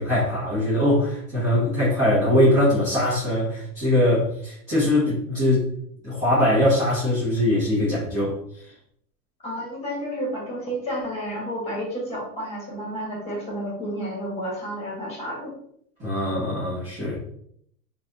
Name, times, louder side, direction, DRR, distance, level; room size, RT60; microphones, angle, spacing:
voice 1, 0.0-5.7 6.0-8.4 16.0-17.2, left 1 dB, 15° right, -10 dB, 1.3 m, -21 dB
voice 2, 9.4-15.5, equal, 15° left, -2 dB, 1.6 m, -31 dB
5.9 x 2.7 x 2.9 m, 0.69 s
supercardioid pair, 150°, 49 cm